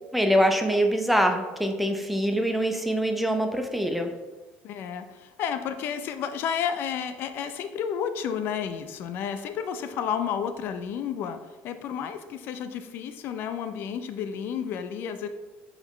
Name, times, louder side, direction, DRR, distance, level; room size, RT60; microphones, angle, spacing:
voice 1, 0.1-4.1, equal, ahead, 4 dB, 0.5 m, -24 dB
voice 2, 4.6-11.4 11.6-15.3, left 8 dB, 55° left, 9 dB, 0.5 m, -31 dB
8.7 x 4.0 x 3.1 m, 1.2 s
cardioid pair, 145°, 4 cm